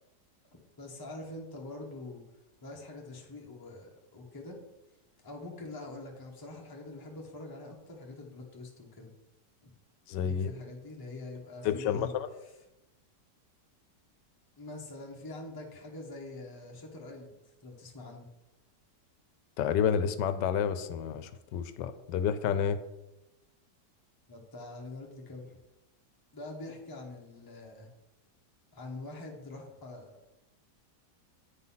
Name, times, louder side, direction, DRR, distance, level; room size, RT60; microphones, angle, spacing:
voice 1, 0.8-2.2 2.6-4.6 5.2-9.1 10.2-12.1 12.4-12.5 14.6-17.3 17.6-18.3 24.3-25.6 26.3-27.9 28.7-30.3, left 2 dB, 15° left, -1 dB, 1.0 m, -44 dB
voice 2, 10.1-10.5 11.6-12.3 19.6-22.8, left 8 dB, 85° left, 11 dB, 1.2 m, -29 dB
8.8 x 4.0 x 5.6 m, 0.98 s
omnidirectional pair, 1.9 m